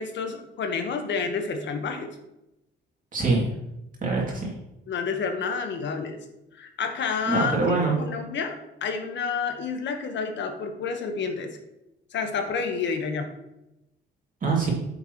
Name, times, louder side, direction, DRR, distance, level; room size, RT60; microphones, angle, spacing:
voice 1, 0.0-2.1 4.9-6.2 6.5-11.6 12.1-13.3, left 5 dB, 65° left, 6 dB, 1.3 m, -29 dB
voice 2, 3.1-3.4 4.0-4.5 7.3-8.0 14.4-14.7, right 3 dB, 40° right, -3 dB, 2.6 m, -23 dB
9.0 x 6.8 x 3.1 m, 0.90 s
cardioid pair, 90°, 20 cm